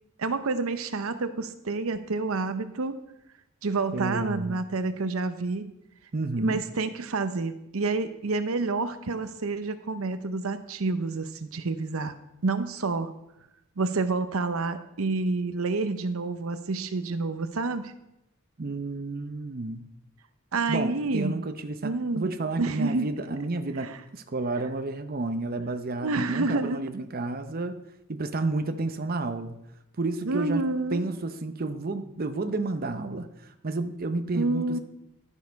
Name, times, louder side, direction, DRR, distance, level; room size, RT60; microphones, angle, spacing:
voice 1, 0.2-3.0 3.6-5.7 6.4-12.1 12.4-13.1 13.8-17.9 20.5-21.4 21.8-22.3 22.6-23.1 23.8-24.0 26.0-26.8 30.2-31.0 34.3-34.8, right 3 dB, 75° right, 10 dB, 0.7 m, -28 dB
voice 2, 3.9-4.6 6.1-6.6 18.6-19.8 20.7-27.8 28.1-29.6 30.0-30.6 30.9-34.8, right 2 dB, 45° right, 8 dB, 0.7 m, -31 dB
12.0 x 6.5 x 5.3 m, 0.84 s
head